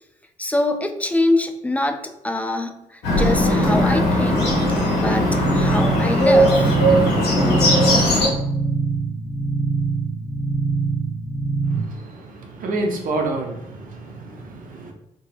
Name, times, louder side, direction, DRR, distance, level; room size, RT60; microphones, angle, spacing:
voice 1, 0.4-4.5 5.0-6.7, left 2 dB, 10° left, 5 dB, 0.3 m, -24 dB
Bird, 3.0-8.3, equal, 70° left, 0.7 m, -18 dB
sound 1, 5.3-11.8, right 4 dB, 10° right, 0.7 m, -24 dB
voice 2, 11.7-14.9, right 2 dB, 50° right, 2 dB, 0.6 m, -29 dB
2.0 x 2.0 x 3.1 m, 0.85 s
figure-of-eight pair, 40°, 18 cm